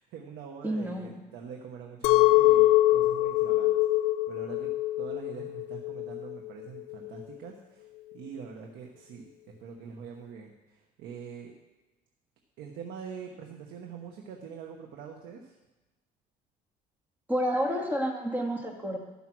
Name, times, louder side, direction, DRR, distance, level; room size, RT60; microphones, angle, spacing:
voice 1, 0.0-3.7 4.0-4.7 5.0-11.5 12.6-15.6, right 6 dB, 85° right, 1 dB, 1.1 m, -44 dB
voice 2, 0.6-1.2 17.3-19.0, equal, 10° right, 1 dB, 1.8 m, -29 dB
Chink clink, 2.0-7.2, left 16 dB, 90° left, 0.4 m, -24 dB
12.5 x 5.6 x 6.1 m, 1.1 s
cardioid pair, 110°, 17 cm